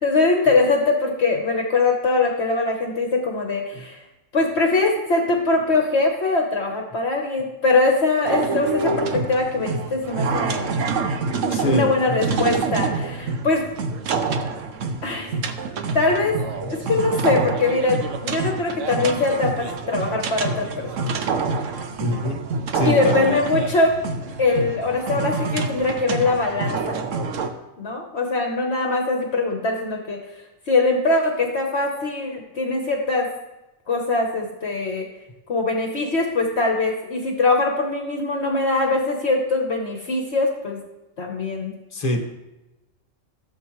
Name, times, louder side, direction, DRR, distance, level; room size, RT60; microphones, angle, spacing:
voice 1, 0.0-4.0 4.3-10.8 11.4-13.6 15.0-15.3 15.9-16.3 16.7-20.9 22.8-23.9 24.4-27.0 27.8-30.2 30.7-33.3 33.9-35.0 35.5-40.8 41.2-41.7, left 3 dB, 55° left, 2 dB, 1.3 m, -22 dB
sound 1, 8.2-27.5, right 4 dB, 75° right, 1.2 m, -27 dB
voice 2, 11.5-12.2 16.6-16.7 21.0-21.2 22.0-22.4 22.7-23.3 41.9-42.2, left 1 dB, 30° left, 1 dB, 1.4 m, -25 dB
15.5 x 7.6 x 3.1 m, 1.0 s
omnidirectional pair, 1.3 m